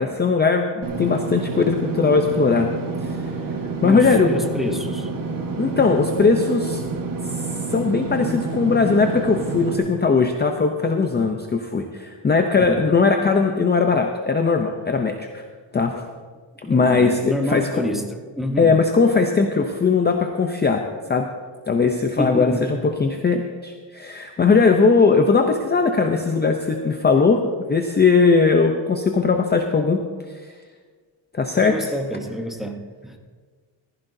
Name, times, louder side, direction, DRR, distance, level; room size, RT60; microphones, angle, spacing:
voice 1, 0.0-2.7 3.0-3.2 3.8-4.3 5.6-6.8 7.7-15.4 15.7-16.0 16.7-17.8 18.6-21.3 21.7-30.0 30.4-30.5 31.3-31.9, left 4 dB, 20° left, 4 dB, 0.6 m, -19 dB
Engine / Mechanisms, 0.8-9.8, right 4 dB, 40° right, 1.5 m, -28 dB
voice 2, 3.8-5.1 12.6-12.8 16.6-18.1 18.4-18.7 22.2-22.6 31.5-33.2, left 1 dB, ahead, 3 dB, 0.9 m, -27 dB
15.0 x 15.0 x 2.7 m, 1.5 s
cardioid pair, 150°, 49 cm